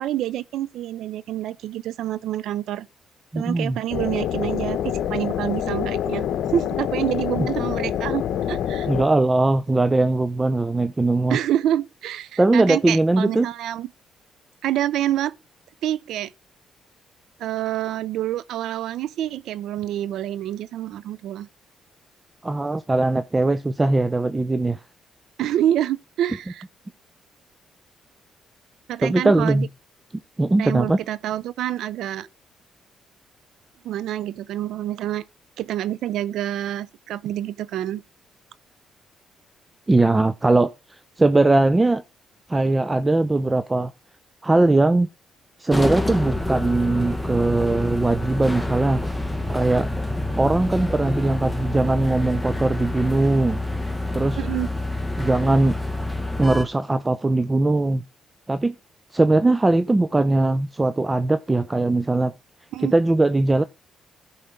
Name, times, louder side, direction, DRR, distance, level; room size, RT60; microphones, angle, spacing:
voice 1, 0.0-2.9 3.3-8.9 11.3-13.9 14.6-15.4 15.8-16.3 17.4-21.5 25.4-26.6 28.9-29.7 30.6-32.3 33.8-35.2 35.6-38.0 54.4-54.7 62.7-62.9, right 12 dB, 80° right, 0.5 m, -27 dB
voice 2, 3.3-3.8 7.4-7.5 8.9-11.4 12.4-13.5 22.4-24.8 29.0-29.7 30.4-31.0 39.9-42.0 42.5-43.9 44.4-45.1 45.6-49.9 50.4-53.6 54.1-54.4 55.2-55.8 56.4-58.0 58.5-58.7 59.1-62.3 62.8-63.6, right 2 dB, 20° right, 0.5 m, -20 dB
sound 1, 3.9-9.1, left 10 dB, 80° left, 0.9 m, -26 dB
sound 2, 45.7-56.6, left 1 dB, ahead, 1.2 m, -27 dB
15.0 x 5.7 x 3.7 m
cardioid pair, 90°, 0 cm